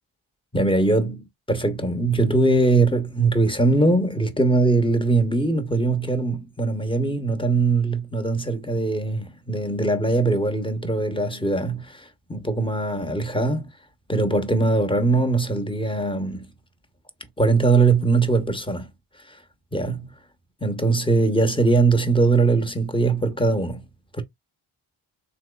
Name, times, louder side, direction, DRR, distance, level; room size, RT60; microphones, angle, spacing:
voice 1, 0.5-13.7 14.1-16.5 17.4-18.9 19.3-19.4 19.7-20.1 20.6-23.8 24.1-24.2, right 3 dB, 10° left, 0.8 m, -21 dB
3.8 x 2.9 x 2.2 m
cardioid pair, 60°, 49 cm